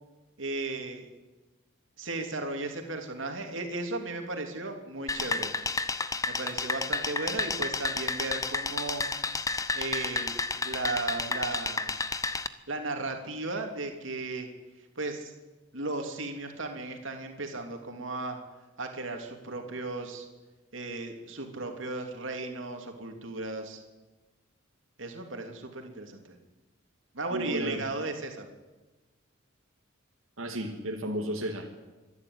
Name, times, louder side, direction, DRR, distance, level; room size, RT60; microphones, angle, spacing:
voice 1, 0.4-1.1 2.0-5.5 6.3-9.0 9.7-10.4 10.6-12.0 12.7-14.5 15.0-15.3 15.7-18.4 18.8-20.3 20.7-23.8 25.0-26.3 27.1-28.5, right 2 dB, 65° right, 4 dB, 3.0 m, -35 dB
sound 1, 5.1-12.5, left 3 dB, 15° left, 0.7 m, -31 dB
voice 2, 27.3-27.8 30.4-31.7, equal, 85° right, 1 dB, 2.3 m, -33 dB
24.5 x 11.5 x 9.6 m, 1.2 s
head